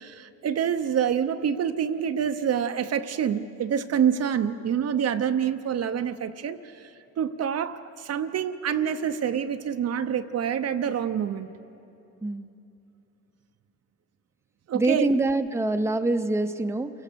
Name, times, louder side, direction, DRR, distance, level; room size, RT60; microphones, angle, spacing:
voice 1, 0.0-11.5 14.7-15.1, right 8 dB, 55° right, 9 dB, 0.8 m, -27 dB
voice 2, 14.7-16.9, right 2 dB, 10° right, 7 dB, 0.8 m, -25 dB
28.0 x 17.5 x 6.9 m, 2.9 s
cardioid pair, 90°, 30 cm